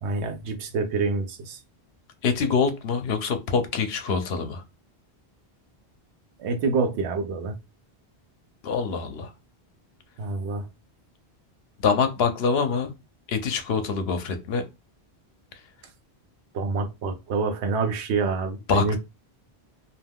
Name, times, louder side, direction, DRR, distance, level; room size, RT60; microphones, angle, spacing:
voice 1, 0.0-1.6 6.4-7.5 10.2-10.7 16.5-19.0, right 4 dB, 90° right, 0.9 m, -27 dB
voice 2, 2.2-4.6 8.6-9.3 11.8-12.9 13.3-14.6 18.7-19.0, left 5 dB, 70° left, 0.8 m, -25 dB
2.4 x 2.2 x 3.4 m
omnidirectional pair, 1.1 m